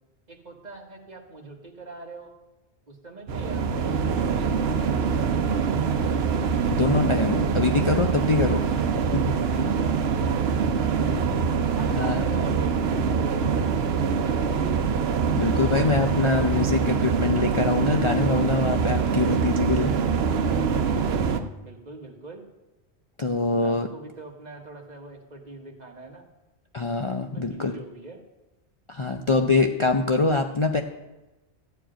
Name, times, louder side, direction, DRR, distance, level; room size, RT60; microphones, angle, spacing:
voice 1, 0.3-2.3 2.9-5.3 11.7-12.8 13.1-14.8 21.6-22.4 23.6-26.3 27.2-28.2, right 3 dB, 40° right, 2 dB, 1.5 m, -42 dB
sound 1, 3.3-21.4, right 5 dB, 70° right, 0.9 m, -24 dB
voice 2, 6.7-9.2 9.5-9.7 11.9-12.2 15.3-19.9 23.2-23.9 26.7-27.7 28.9-30.8, left 3 dB, 35° left, 4 dB, 0.5 m, -24 dB
13.5 x 4.9 x 8.9 m, 1.0 s
omnidirectional pair, 1.1 m